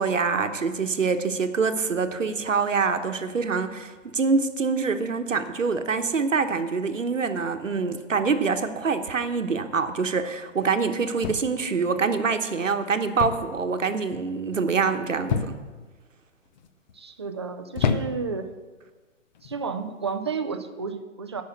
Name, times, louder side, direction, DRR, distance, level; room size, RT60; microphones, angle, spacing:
voice 1, 0.0-15.5, right 5 dB, 75° right, 8 dB, 1.1 m, -25 dB
sound 1, 11.2-11.7 13.2-13.6 13.9-14.3 15.3-15.8 16.6-16.9 17.8-18.4 19.3-19.6, left 6 dB, 35° left, 0.7 m, -28 dB
voice 2, 16.9-18.5 19.4-21.4, right 5 dB, 25° right, 8 dB, 0.3 m, -31 dB
10.0 x 5.7 x 8.0 m, 1.3 s
figure-of-eight pair, 125°, 39 cm